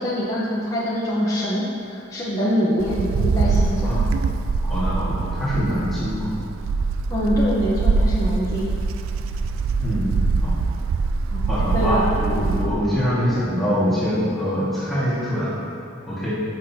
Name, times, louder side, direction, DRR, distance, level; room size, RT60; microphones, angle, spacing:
voice 1, 0.0-3.9 7.1-8.7 11.3-12.1, equal, 15° left, -8 dB, 1.1 m, -24 dB
Wind, 2.8-12.8, right 4 dB, 75° right, 0.4 m, -23 dB
voice 2, 4.6-6.3 9.8-10.2 10.4-10.6 11.4-15.6 16.1-16.4, equal, ahead, -12 dB, 1.9 m, -24 dB
14.0 x 6.1 x 2.9 m, 2.7 s
head